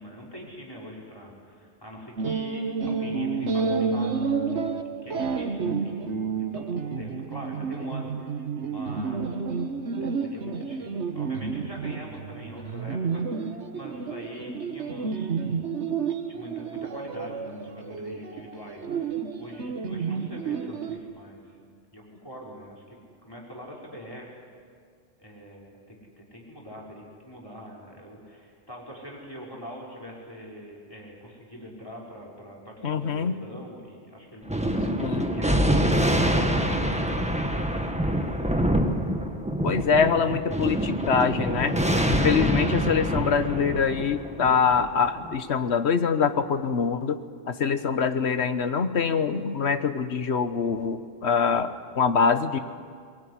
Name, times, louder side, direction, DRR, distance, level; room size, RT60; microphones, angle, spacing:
voice 1, 0.0-15.6 16.3-21.6 21.9-24.5 25.2-34.4 34.7-38.7, equal, 20° left, -3 dB, 5.9 m, -44 dB
sound 1, 2.2-21.0, right 5 dB, 85° right, 1.6 m, -30 dB
voice 2, 32.8-33.3 35.0-35.3 39.6-41.7 42.1-47.2 47.5-52.6, left 6 dB, 75° left, 10 dB, 1.4 m, -24 dB
Thunder, 34.5-45.3, equal, 5° right, 1.5 m, -25 dB
23.0 x 21.5 x 10.0 m, 2.1 s
omnidirectional pair, 1.1 m